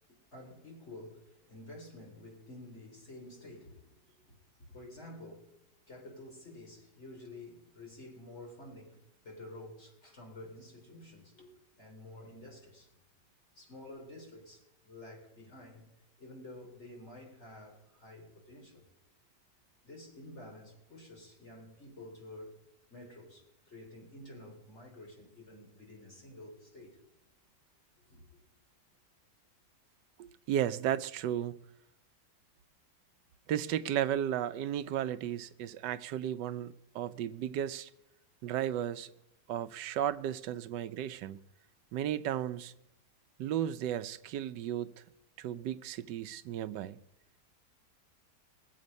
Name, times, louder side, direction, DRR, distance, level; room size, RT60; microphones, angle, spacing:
voice 1, 0.1-4.0 4.6-9.0 9.2-12.9 13.6-15.9 16.2-18.8 19.8-22.5 22.9-27.0 28.1-28.4, left 1 dB, 40° left, 3.8 m, -50 dB
voice 2, 30.2-31.6 33.5-37.9 38.4-39.1 39.5-41.4 41.9-42.7 43.4-44.9 45.4-47.0, right 10 dB, 85° right, 1.3 m, -34 dB
21.5 x 7.6 x 5.3 m
omnidirectional pair, 1.8 m